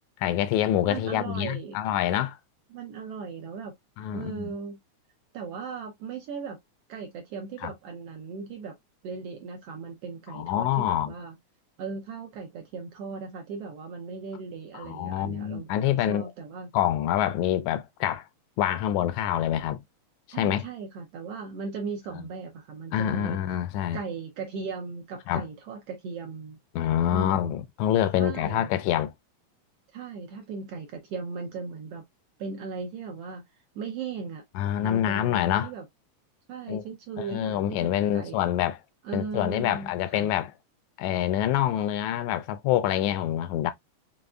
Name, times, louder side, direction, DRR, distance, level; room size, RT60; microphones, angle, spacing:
voice 1, 0.2-2.4 4.0-4.6 7.6-7.7 10.3-11.1 14.7-16.3 16.7-18.3 18.6-19.8 20.3-20.7 22.9-24.0 25.3-25.4 26.8-29.1 34.6-35.7 36.7-36.8 37.2-38.8 39.1-40.5 41.0-43.7, left 11 dB, 80° left, 1.8 m, -26 dB
voice 2, 0.8-1.8 2.7-3.7 4.1-4.8 5.3-6.6 6.9-8.7 9.0-11.3 11.8-16.7 20.3-23.4 23.9-26.6 27.1-27.5 28.2-28.7 29.9-32.0 32.4-33.4 33.7-34.4 34.8-35.8 36.5-38.4 39.0-40.3, right 5 dB, 70° right, 1.5 m, -37 dB
5.2 x 3.6 x 2.3 m
omnidirectional pair, 3.4 m